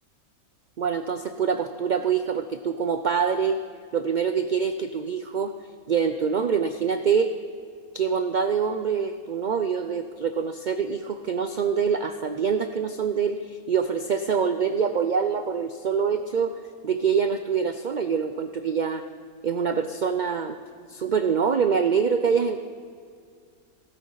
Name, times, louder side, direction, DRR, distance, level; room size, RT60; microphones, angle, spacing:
voice 1, 0.8-3.6 3.9-5.5 5.9-7.3 7.9-16.5 16.8-19.0 19.4-20.6 20.9-22.6, right 6 dB, 85° right, 8 dB, 0.4 m, -25 dB
16.5 x 14.5 x 3.9 m, 2.2 s
omnidirectional pair, 1.5 m